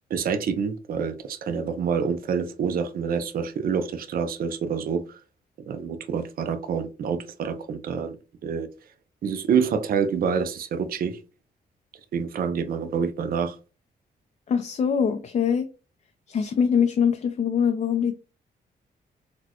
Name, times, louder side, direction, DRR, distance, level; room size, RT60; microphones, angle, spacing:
voice 1, 0.1-5.2 5.7-8.2 8.4-8.7 9.2-11.2 12.1-13.6, right 6 dB, 60° right, 0.5 m, -27 dB
voice 2, 14.5-15.7 16.3-18.1, left 7 dB, 45° left, 0.4 m, -23 dB
4.1 x 2.2 x 2.9 m
cardioid pair, 90°, 17 cm